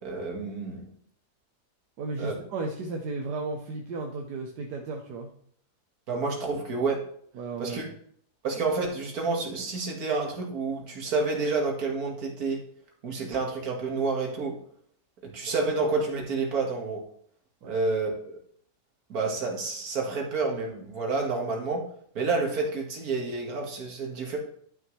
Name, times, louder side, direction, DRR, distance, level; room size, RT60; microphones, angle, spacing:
voice 1, 0.0-0.8 2.2-2.3 6.1-7.0 7.6-7.9 8.4-12.6 13.0-14.6 15.2-17.0 17.6-18.3 19.1-21.9 22.2-24.4, right 3 dB, 60° right, 0 dB, 2.1 m, -29 dB
voice 2, 2.0-5.3 7.3-8.0 17.6-17.8, right 3 dB, 80° right, 2 dB, 1.4 m, -34 dB
11.5 x 6.0 x 3.2 m, 0.62 s
omnidirectional pair, 1.8 m